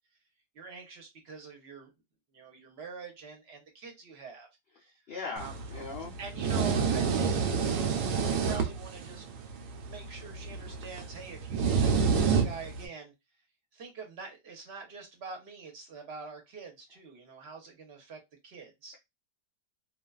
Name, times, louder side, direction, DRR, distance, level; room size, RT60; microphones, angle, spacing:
voice 1, 0.5-1.9 2.3-4.5 4.8-4.9 5.4-5.5 6.2-8.0 8.3-9.2 9.8-13.1 13.7-18.9, right 5 dB, 50° right, 2 dB, 1.0 m, -45 dB
voice 2, 5.1-6.1, left 4 dB, 65° left, 0 dB, 0.6 m, -39 dB
sound 1, 5.4-12.9, right 6 dB, 90° right, 1.1 m, -29 dB
2.5 x 2.4 x 2.3 m, 0.21 s
omnidirectional pair, 1.7 m